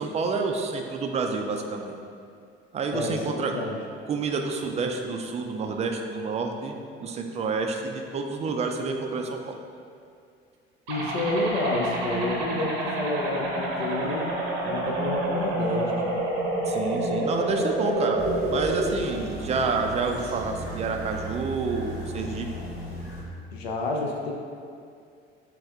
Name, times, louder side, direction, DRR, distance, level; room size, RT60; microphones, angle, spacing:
voice 1, 0.0-2.0 2.7-3.5 4.1-6.8 7.0-9.5 16.7-22.5, right 4 dB, 20° right, 3 dB, 0.3 m, -29 dB
voice 2, 2.9-3.8 10.9-14.3 14.6-16.1 23.5-24.3, left 2 dB, 75° left, 0 dB, 0.5 m, -29 dB
sound 1, 10.9-18.9, right 2 dB, 60° right, 0.8 m, -29 dB
sound 2, 10.9-18.4, equal, 90° right, 1.0 m, -37 dB
sound 3, 18.2-23.2, right 1 dB, 90° left, 1.1 m, -37 dB
3.4 x 3.3 x 3.4 m, 2.3 s
figure-of-eight pair, 55°, 31 cm